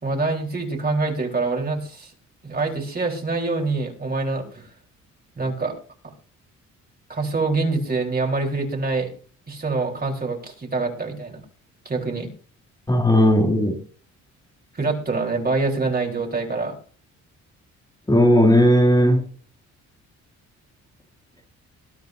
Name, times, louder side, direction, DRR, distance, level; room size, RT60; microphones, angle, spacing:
voice 1, 0.0-2.1 2.4-4.7 5.4-5.8 7.1-9.1 9.5-11.4 11.8-12.3 14.7-16.7, right 3 dB, 30° right, 4.1 m, -25 dB
voice 2, 12.9-13.7 18.1-19.2, equal, 15° left, 2.5 m, -16 dB
21.0 x 10.5 x 2.7 m
cardioid pair, 90°, 30 cm